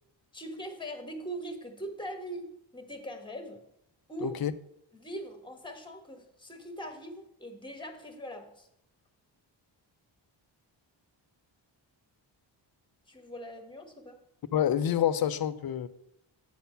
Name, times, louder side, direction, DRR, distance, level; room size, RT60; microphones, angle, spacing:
voice 1, 0.3-3.6 4.1-4.4 4.9-8.7 13.1-14.2, equal, 10° left, 1.4 m, -41 dB
voice 2, 4.2-4.5 14.5-15.9, left 10 dB, 50° left, 0.6 m, -27 dB
9.0 x 4.4 x 6.8 m
cardioid pair, 90°, 47 cm